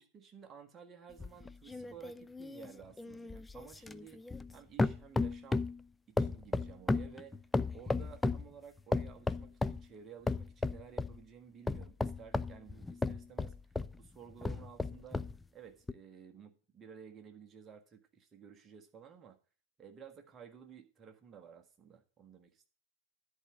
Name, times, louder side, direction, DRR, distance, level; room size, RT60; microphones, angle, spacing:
voice 1, 0.0-4.2 4.5-5.7 6.1-7.3 7.7-15.2 15.5-19.4 19.8-22.7, right 7 dB, 25° right, 5 dB, 1.5 m, -54 dB
sound 1, 1.2-4.5 4.8-5.8 6.2-8.5 8.9-9.8 10.3-11.2 11.7-14.0 14.4-15.4 15.9-16.0, left 3 dB, 10° left, 0.4 m, -34 dB
10.5 x 4.9 x 7.4 m, 0.38 s
figure-of-eight pair, 90°, 0 cm